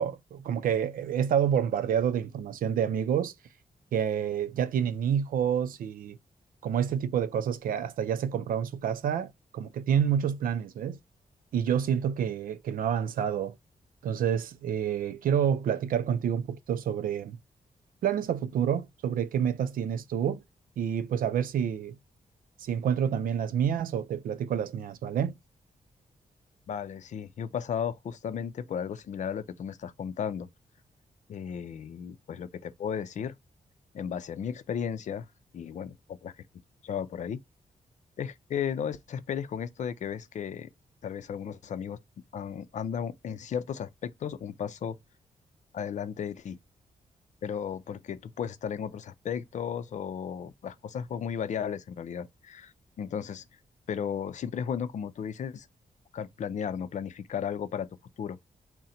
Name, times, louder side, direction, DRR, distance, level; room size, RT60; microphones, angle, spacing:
voice 1, 0.0-3.3 3.9-6.2 6.6-11.0 11.5-13.5 14.0-17.4 18.0-20.4 20.8-22.0 22.6-25.4, right 8 dB, 90° right, 0.4 m, -28 dB
voice 2, 26.7-30.5 31.3-33.4 33.9-35.3 35.5-36.3 36.8-37.4 38.2-40.7 41.0-42.0 42.3-45.0 45.7-46.6 47.4-52.7 53.0-53.4 53.9-55.7 56.1-57.9 58.2-58.4, left 8 dB, 60° left, 0.5 m, -34 dB
4.2 x 2.1 x 3.7 m
wide cardioid pair, 160°, 14 cm